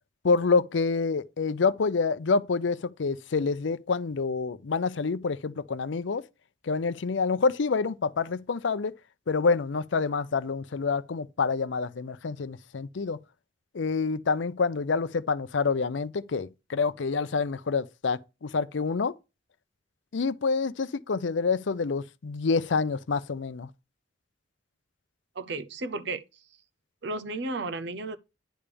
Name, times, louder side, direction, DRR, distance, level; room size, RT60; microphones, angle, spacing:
voice 1, 0.2-6.2 6.7-8.9 9.3-13.2 13.7-19.1 20.1-23.7, left 4 dB, 75° left, 0.5 m, -27 dB
voice 2, 25.4-26.2 27.0-28.2, right 2 dB, 65° right, 0.7 m, -33 dB
10.0 x 3.5 x 6.8 m
head